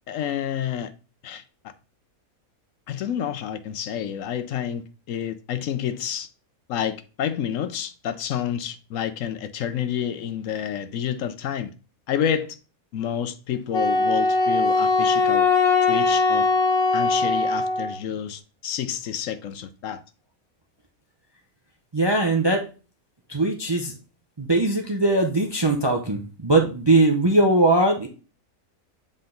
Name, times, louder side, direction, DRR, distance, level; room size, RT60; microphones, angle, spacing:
voice 1, 0.1-0.9 1.2-1.4 2.9-6.3 6.7-11.7 12.1-12.6 12.9-15.5 15.9-16.5 16.9-20.0, left 9 dB, 70° left, 0.9 m, -29 dB
Wind instrument woodwind instrument, 13.7-18.0, left 3 dB, 50° left, 1.1 m, -20 dB
voice 2, 21.9-22.6 23.3-23.9 24.4-28.1, right 2 dB, 30° right, 0.5 m, -20 dB
7.8 x 3.8 x 3.8 m
omnidirectional pair, 1.5 m